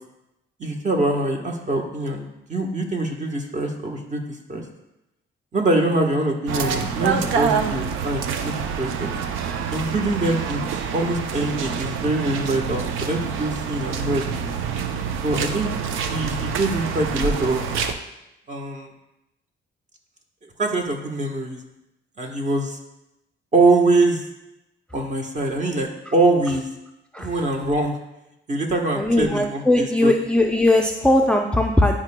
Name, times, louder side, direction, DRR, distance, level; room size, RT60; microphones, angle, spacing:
voice 1, 0.6-4.2 4.5-4.6 5.5-9.1 9.7-10.6 10.9-14.2 15.2-15.7 16.1-17.6 18.5-18.9 20.6-21.6 22.2-22.8 23.5-24.2 24.9-26.7 27.2-28.0 28.5-30.1, right 2 dB, 35° right, 2 dB, 1.2 m, -23 dB
sound 1, 6.5-17.9, right 6 dB, 90° right, 0.5 m, -26 dB
voice 2, 29.0-31.9, left 1 dB, 5° left, 2 dB, 0.5 m, -19 dB
10.5 x 4.9 x 2.2 m, 0.90 s
cardioid pair, 90°, 20 cm